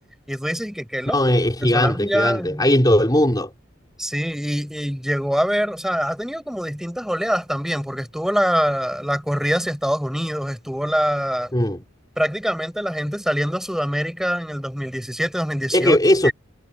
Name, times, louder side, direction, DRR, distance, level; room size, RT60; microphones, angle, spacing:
voice 1, 0.3-2.6 4.0-11.5 12.2-16.0 16.2-16.3, equal, ahead, 6.9 m, -24 dB
voice 2, 1.1-3.5 11.5-11.8 15.7-16.3, left 1 dB, 20° left, 4.5 m, -18 dB
head